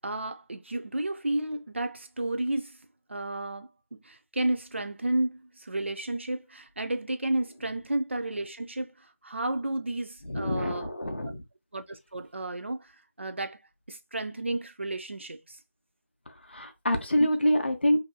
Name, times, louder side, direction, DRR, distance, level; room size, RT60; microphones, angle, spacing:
voice 1, 0.0-2.8 3.1-10.9 11.7-12.9 13.2-13.6 13.9-15.6 17.2-17.3, right 2 dB, 45° right, 0.4 m, -32 dB
voice 2, 10.2-11.4 16.3-18.0, equal, 40° left, 0.5 m, -26 dB
2.7 x 2.6 x 2.2 m
figure-of-eight pair, 175°, 9 cm